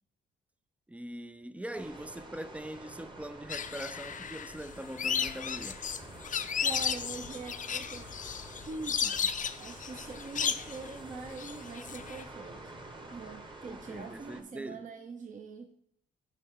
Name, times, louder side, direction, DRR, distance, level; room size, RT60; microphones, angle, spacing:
voice 1, 0.9-5.8 13.6-14.8, right 1 dB, 5° right, 0.4 m, -42 dB
sound 1, 1.7-14.4, right 2 dB, 25° right, 1.3 m, -49 dB
sound 2, 3.5-12.2, left 7 dB, 40° left, 0.6 m, -34 dB
voice 2, 6.6-8.1 8.6-12.8 13.1-15.7, right 4 dB, 40° right, 0.8 m, -44 dB
9.5 x 5.5 x 3.8 m
cardioid pair, 90°, 20 cm